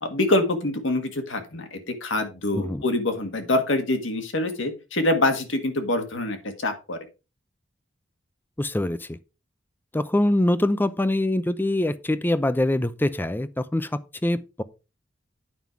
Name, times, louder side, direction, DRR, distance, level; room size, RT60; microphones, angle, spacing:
voice 1, 0.0-7.0, left 2 dB, 70° left, 1.7 m, -25 dB
voice 2, 8.6-9.1 9.9-13.9 14.2-14.6, left 1 dB, 10° left, 0.5 m, -24 dB
9.4 x 5.5 x 4.6 m
head